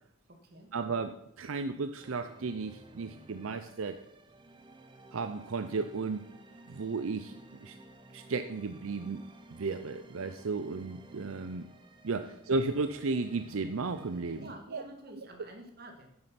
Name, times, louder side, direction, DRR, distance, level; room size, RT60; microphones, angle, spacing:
voice 1, 0.7-4.0 5.1-6.2 6.7-7.3 7.6-7.8 8.1-9.2 9.5-11.7 12.0-14.8 15.2-15.3, right 3 dB, 75° right, 9 dB, 0.6 m, -34 dB
sound 1, 2.0-14.5, right 1 dB, 25° right, 0.9 m, -54 dB
voice 2, 14.4-16.1, right 1 dB, 45° right, 3 dB, 1.9 m, -49 dB
9.6 x 7.8 x 5.8 m, 0.79 s
head